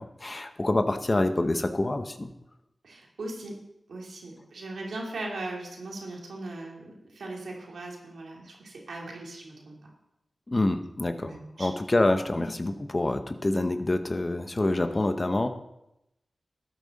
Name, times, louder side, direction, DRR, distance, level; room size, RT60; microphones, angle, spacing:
voice 1, 0.0-2.3 10.5-15.5, left 2 dB, 40° left, 8 dB, 1.0 m, -27 dB
voice 2, 2.8-3.6 3.9-9.8 11.1-11.7, right 2 dB, 85° right, -1 dB, 2.6 m, -39 dB
13.0 x 9.4 x 4.1 m, 0.86 s
cardioid pair, 45°, 0 cm